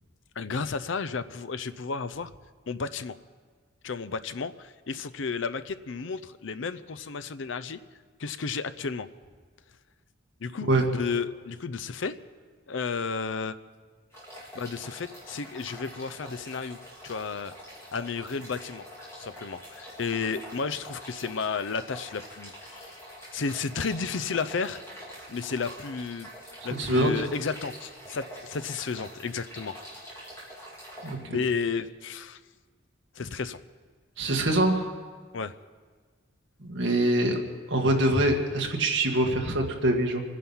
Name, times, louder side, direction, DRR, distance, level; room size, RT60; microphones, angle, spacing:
voice 1, 0.4-2.3 2.7-3.2 3.8-7.8 8.2-9.1 10.4-12.2 12.7-13.6 14.5-16.8 17.0-17.5 17.9-18.9 19.1-22.9 23.3-24.8 25.3-26.3 26.6-29.8 31.2-32.4 33.1-33.6 35.3-35.5, left 5 dB, 70° left, 14 dB, 0.6 m, -32 dB
sound 1, 14.1-31.1, equal, 15° left, 4.0 m, -45 dB
voice 2, 26.8-27.2 31.0-31.4 34.2-34.9 36.6-37.4 37.7-40.2, right 1 dB, 65° right, 2 dB, 1.8 m, -24 dB
25.5 x 10.0 x 5.6 m, 1.5 s
head